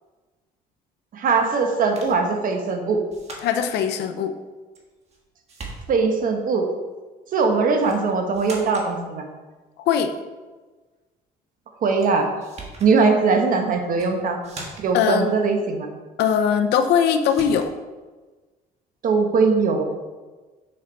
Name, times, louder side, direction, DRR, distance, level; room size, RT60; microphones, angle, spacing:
voice 1, 1.1-3.0 5.9-6.7 7.3-9.3 11.8-12.3 12.8-14.4 14.8-15.9 19.0-19.8, right 4 dB, 55° right, 4 dB, 1.2 m, -20 dB
sound 1, 1.9-2.2 3.1-3.7 4.7-5.2 5.5-6.2 7.8-8.0 8.3-8.9 12.0-12.1 12.4-12.9 13.8-14.1 14.4-15.0 16.7-16.9 17.2-17.7, right 2 dB, 40° right, 1.6 m, -39 dB
voice 2, 3.4-4.4 9.9-10.2 14.9-15.3 16.2-17.7, left 7 dB, 80° left, 7 dB, 0.7 m, -20 dB
6.6 x 6.4 x 4.1 m, 1.3 s
cardioid pair, 110°, 17 cm